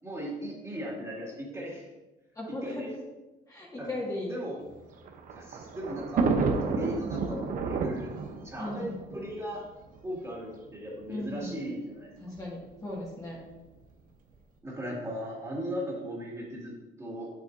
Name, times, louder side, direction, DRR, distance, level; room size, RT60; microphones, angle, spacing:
voice 1, 0.0-1.9 2.5-2.9 3.8-3.9 4.3-4.6 5.3-8.1 8.4-9.6 10.0-12.1 14.6-17.3, equal, 15° right, -4 dB, 2.5 m, -37 dB
voice 2, 2.4-3.0 3.5-4.3 8.6-9.0 11.1-11.5 12.2-13.4, left 1 dB, 20° left, -5 dB, 2.1 m, -37 dB
Thunder, 4.7-10.0 10.9-11.0 11.2-11.3 12.4-12.7, right 4 dB, 55° right, 1.0 m, -31 dB
7.9 x 7.8 x 2.8 m, 1.1 s
cardioid pair, 110°, 17 cm